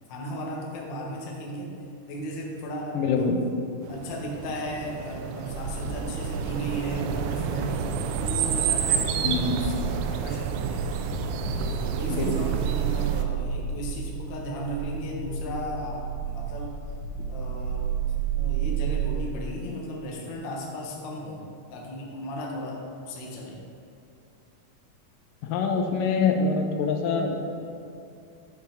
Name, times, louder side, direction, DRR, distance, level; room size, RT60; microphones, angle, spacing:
voice 1, 0.1-1.7 2.1-3.3 3.9-7.9 8.2-9.7 10.1-10.8 11.6-16.7 17.3-17.9 18.3-21.4 21.7-22.8 23.1-23.6, equal, 70° left, -2 dB, 1.0 m, -35 dB
voice 2, 2.9-3.4 9.2-9.6 12.1-12.3 25.4-27.4, left 5 dB, 90° left, 4 dB, 2.4 m, -25 dB
sound 1, 3.8-13.3, right 7 dB, 80° right, 1.8 m, -30 dB
sound 2, 5.5-19.2, right 7 dB, 45° right, 1.8 m, -32 dB
9.0 x 5.4 x 4.4 m, 2.5 s
omnidirectional pair, 3.9 m